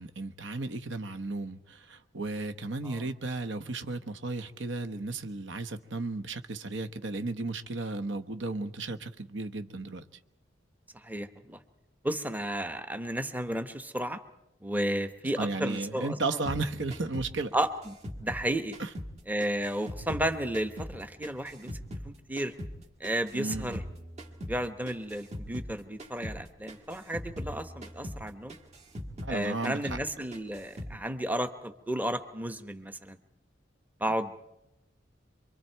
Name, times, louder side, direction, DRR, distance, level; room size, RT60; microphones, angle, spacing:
voice 1, 0.0-10.0 15.4-17.5 18.8-18.9 23.3-23.8 29.2-30.0, right 3 dB, 70° right, 10 dB, 1.2 m, -34 dB
voice 2, 10.9-11.6 12.0-14.2 14.6-16.4 17.5-17.9 18.2-18.8 19.3-21.8 22.0-22.5 23.0-23.8 24.5-28.6 29.3-33.2 34.0-34.4, right 1 dB, 10° right, 9 dB, 1.0 m, -33 dB
sound 1, 16.5-19.2 19.4-22.1 22.4-25.7 26.0-26.4 26.7-29.4 29.6-30.1 30.3-31.0, equal, 35° right, 2.0 m, -41 dB
26.0 x 23.5 x 4.6 m, 0.88 s
head